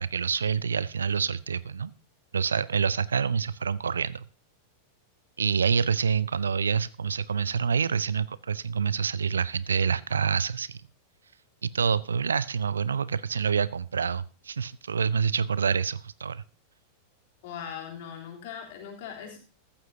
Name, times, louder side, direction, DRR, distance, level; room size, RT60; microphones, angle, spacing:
voice 1, 0.0-1.9 2.3-4.2 5.4-10.8 11.6-16.4, right 6 dB, 70° right, 20 dB, 0.5 m, -27 dB
voice 2, 17.4-19.4, left 8 dB, 50° left, 1 dB, 3.4 m, -40 dB
14.5 x 14.0 x 2.8 m, 0.35 s
figure-of-eight pair, 90°, 0 cm